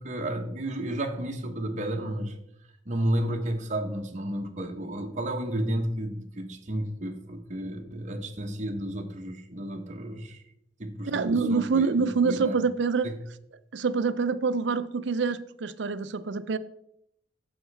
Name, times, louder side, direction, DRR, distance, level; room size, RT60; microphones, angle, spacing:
voice 1, 0.0-2.3 2.8-10.4 10.8-12.6 13.0-13.2, right 1 dB, 40° right, 1.1 m, -32 dB
voice 2, 11.1-13.1 13.7-16.6, right 4 dB, 70° right, 0.5 m, -26 dB
9.0 x 7.3 x 3.4 m
head